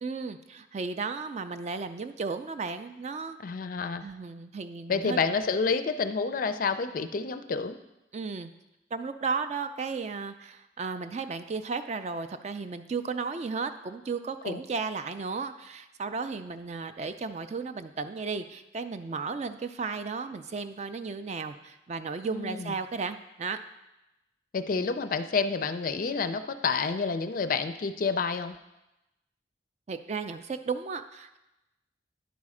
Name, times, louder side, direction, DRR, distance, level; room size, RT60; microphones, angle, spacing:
voice 1, 0.0-3.4 4.0-5.2 8.1-8.5 8.9-23.6 24.7-24.9 29.9-31.4, right 4 dB, 35° right, 9 dB, 0.3 m, -34 dB
voice 2, 3.4-4.0 4.9-7.8 14.4-14.6 22.2-22.7 24.5-28.6, left 4 dB, 45° left, 10 dB, 0.4 m, -29 dB
10.5 x 4.2 x 4.9 m, 0.94 s
head